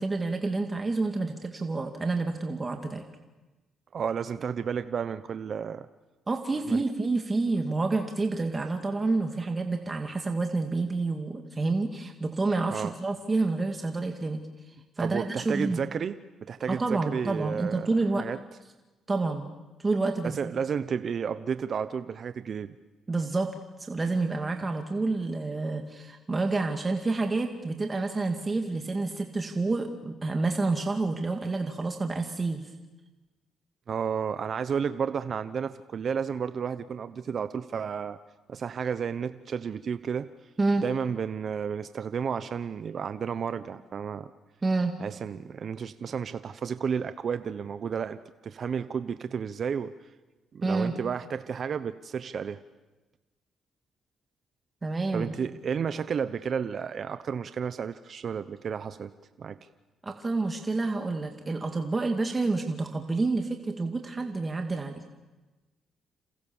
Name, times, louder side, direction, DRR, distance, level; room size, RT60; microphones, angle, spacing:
voice 1, 0.0-3.0 6.3-15.8 16.7-18.3 19.1-19.5 19.8-20.5 23.1-23.5 23.8-32.7 40.6-40.8 44.6-45.0 50.6-51.0 54.8-55.4 60.0-65.0, right 3 dB, 25° right, 4 dB, 2.2 m, -29 dB
voice 2, 3.9-5.9 6.7-6.8 12.7-12.9 15.0-17.9 18.2-18.4 20.2-22.8 33.9-38.2 38.5-40.3 40.8-44.3 45.0-49.9 50.5-52.6 55.1-59.1 59.4-59.6, right 7 dB, 50° right, 11 dB, 0.9 m, -32 dB
29.5 x 28.0 x 7.2 m, 1.2 s
cardioid pair, 90°, 0 cm